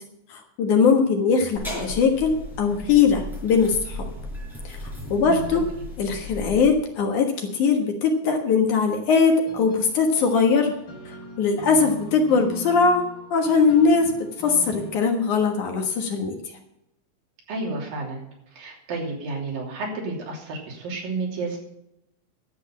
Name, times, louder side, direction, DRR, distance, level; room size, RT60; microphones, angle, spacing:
voice 1, 0.3-4.1 4.6-4.8 5.1-5.7 6.0-10.7 11.4-14.1 14.4-16.4, left 5 dB, 65° left, 3 dB, 2.7 m, -21 dB
sound 1, 1.5-6.7, left 1 dB, ahead, 5.3 m, -36 dB
sound 2, 9.5-15.0, left 2 dB, 35° left, 3.4 m, -42 dB
voice 2, 17.5-18.2 18.5-21.6, right 3 dB, 75° right, -1 dB, 4.8 m, -31 dB
12.0 x 8.2 x 7.3 m, 0.84 s
omnidirectional pair, 4.2 m